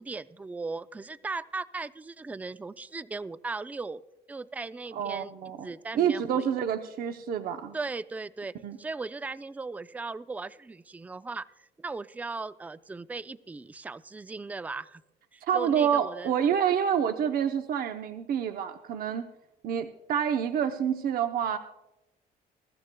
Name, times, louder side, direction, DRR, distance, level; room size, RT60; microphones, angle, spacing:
voice 1, 0.0-4.0 4.3-5.3 5.6-6.5 7.7-15.0 15.3-16.3, right 3 dB, 10° right, 15 dB, 0.3 m, -37 dB
voice 2, 4.9-7.8 8.6-8.8 15.4-19.3 19.6-21.6, right 8 dB, 60° right, 7 dB, 0.7 m, -28 dB
22.5 x 13.0 x 2.2 m, 0.95 s
cardioid pair, 110°, 17 cm